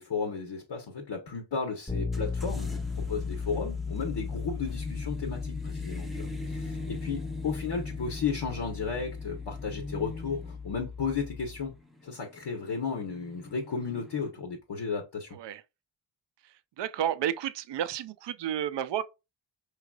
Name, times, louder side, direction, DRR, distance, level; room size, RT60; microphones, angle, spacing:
voice 1, 0.0-11.7 12.0-15.4, left 5 dB, 60° left, 1.1 m, -34 dB
Bass guitar, 1.9-11.7, left 5 dB, 15° left, 1.1 m, -36 dB
sound 1, 2.1-14.3, left 2 dB, ahead, 0.7 m, -42 dB
voice 2, 16.4-19.0, right 10 dB, 65° right, 0.5 m, -32 dB
4.8 x 3.3 x 2.3 m
cardioid pair, 55°, 48 cm